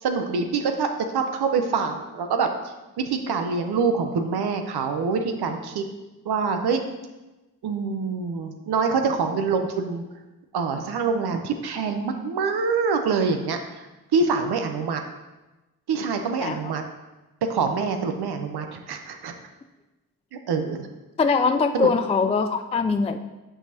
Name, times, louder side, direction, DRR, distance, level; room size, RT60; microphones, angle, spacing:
voice 1, 0.0-5.8 6.2-6.8 7.6-10.0 10.5-15.0 15.9-16.8 17.5-19.3 20.3-20.9 21.7-21.9, right 5 dB, 80° right, 6 dB, 0.7 m, -25 dB
voice 2, 21.2-23.2, left 4 dB, 15° left, 8 dB, 0.3 m, -22 dB
8.7 x 4.8 x 2.8 m, 1.1 s
cardioid pair, 45°, 38 cm